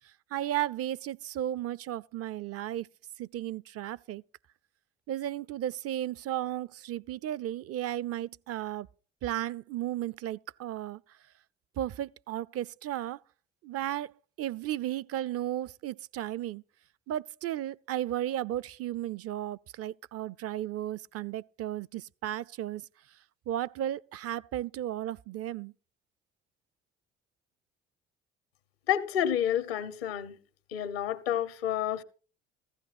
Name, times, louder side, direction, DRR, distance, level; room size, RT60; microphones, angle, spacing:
voice 1, 0.3-2.9 3.2-4.2 5.1-8.9 9.2-11.0 11.8-13.2 13.6-16.6 17.1-22.8 23.5-25.7, right 12 dB, 55° right, 0.6 m, -34 dB
voice 2, 28.9-30.4 30.7-32.0, left 10 dB, 85° left, 1.1 m, -29 dB
15.5 x 15.0 x 2.5 m
hypercardioid pair, 55°, 30 cm